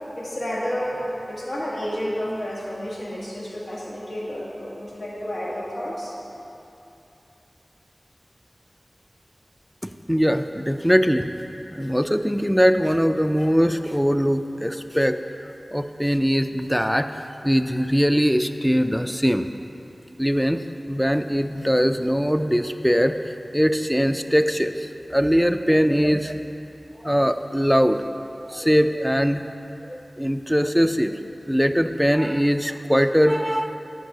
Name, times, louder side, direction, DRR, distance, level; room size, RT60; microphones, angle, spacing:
voice 1, 0.1-6.1, equal, 70° left, -6 dB, 1.8 m, -30 dB
voice 2, 10.1-11.3 11.7-19.5 20.2-20.6 20.9-26.4 27.0-28.0 28.5-29.4 29.9-31.2 31.5-33.8, equal, ahead, 8 dB, 0.4 m, -21 dB
10.0 x 4.7 x 6.5 m, 2.9 s
wide cardioid pair, 50°, 0 cm